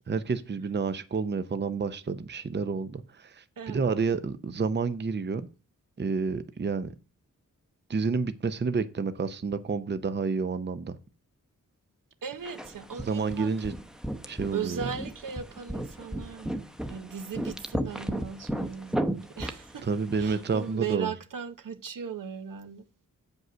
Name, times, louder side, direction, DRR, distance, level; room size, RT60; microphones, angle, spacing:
voice 1, 0.1-5.5 6.0-7.0 7.9-11.0 13.0-13.7 14.3-14.8 19.8-21.1, right 4 dB, 35° right, 0.6 m, -29 dB
voice 2, 3.6-4.1 12.2-13.5 14.5-16.6 16.9-19.9 20.2-22.8, right 7 dB, 75° right, 0.9 m, -37 dB
sound 1, 12.5-20.6, right 1 dB, ahead, 0.8 m, -35 dB
7.8 x 5.4 x 6.1 m
wide cardioid pair, 80°, 33 cm